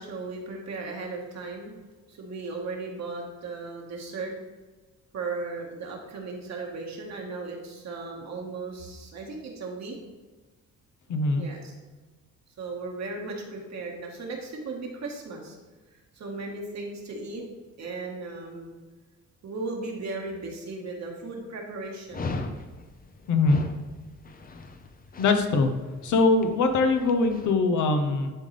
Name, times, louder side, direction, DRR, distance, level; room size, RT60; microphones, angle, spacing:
voice 1, 0.0-1.7 2.1-4.3 5.1-10.0 11.4-11.7 12.6-15.6 15.9-17.4 17.8-18.7 19.4-22.4, right 3 dB, 60° right, 0 dB, 1.7 m, -36 dB
voice 2, 11.1-11.5 23.3-23.6 25.2-25.7 26.0-28.3, left 3 dB, 75° left, 6 dB, 1.0 m, -22 dB
Dog, 22.1-27.5, left 3 dB, 30° left, 0.7 m, -38 dB
10.5 x 3.9 x 3.3 m, 1.3 s
cardioid pair, 90°, 30 cm